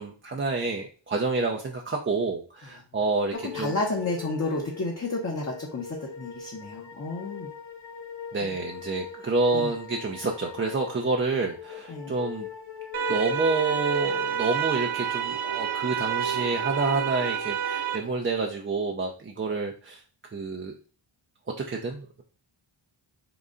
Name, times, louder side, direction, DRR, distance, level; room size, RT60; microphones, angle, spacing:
voice 1, 0.0-3.7 8.3-12.5 13.1-20.0 20.3-20.7 21.6-22.2, right 3 dB, 25° right, 1 dB, 0.4 m, -28 dB
sound 1, 3.3-18.5, left 4 dB, 55° left, 1.0 m, -40 dB
voice 2, 3.3-7.5 8.4-8.5 9.5-9.7 11.9-12.2, left 2 dB, 35° left, -1 dB, 0.8 m, -31 dB
sound 2, 12.9-18.0, right 9 dB, 80° right, 0.8 m, -29 dB
3.8 x 2.2 x 3.7 m, 0.37 s
wide cardioid pair, 85°, 50 cm